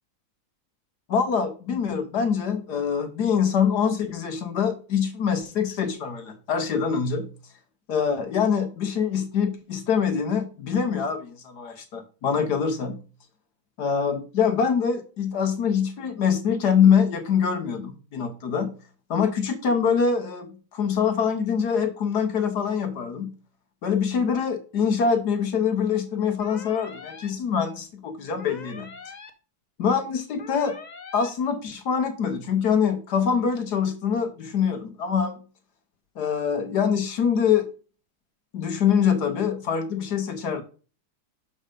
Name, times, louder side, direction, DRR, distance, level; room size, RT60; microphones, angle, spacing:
voice 1, 1.1-7.3 7.9-13.0 13.8-18.7 19.1-23.3 23.8-28.9 29.8-30.8 31.1-35.4 36.2-37.7 38.5-40.6, left 7 dB, 60° left, 7 dB, 1.3 m, -24 dB
sound 1, 26.4-27.3 28.4-29.3 30.4-31.3, left 5 dB, 75° left, 0.4 m, -42 dB
6.4 x 5.5 x 5.0 m, 0.36 s
omnidirectional pair, 2.2 m